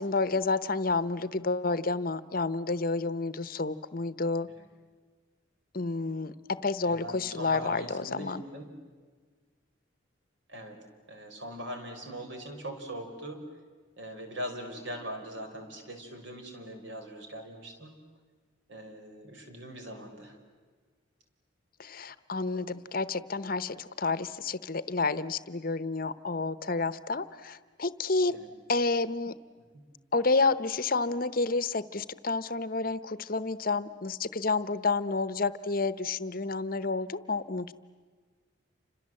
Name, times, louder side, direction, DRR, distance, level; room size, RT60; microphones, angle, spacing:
voice 1, 0.0-4.5 5.7-8.4 21.8-28.4 28.7-29.4 30.1-37.7, left 3 dB, 45° left, 15 dB, 0.9 m, -30 dB
voice 2, 6.9-8.7 10.5-13.4 14.0-17.9 18.7-20.4 28.3-28.5 29.7-29.8, equal, 65° right, 4 dB, 4.8 m, -41 dB
29.5 x 26.5 x 7.7 m, 1.5 s
head